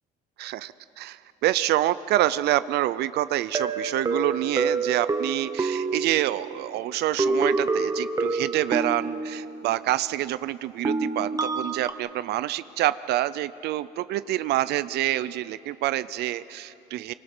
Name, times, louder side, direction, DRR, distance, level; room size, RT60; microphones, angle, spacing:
voice 1, 0.4-17.1, right 14 dB, 75° right, 15 dB, 0.5 m, -27 dB
sound 1, 2.4-2.5 3.5-6.7 7.2-9.8 10.8-11.9, right 3 dB, 20° right, 1.0 m, -27 dB
24.5 x 23.5 x 6.1 m, 3.0 s
cardioid pair, 110°, 17 cm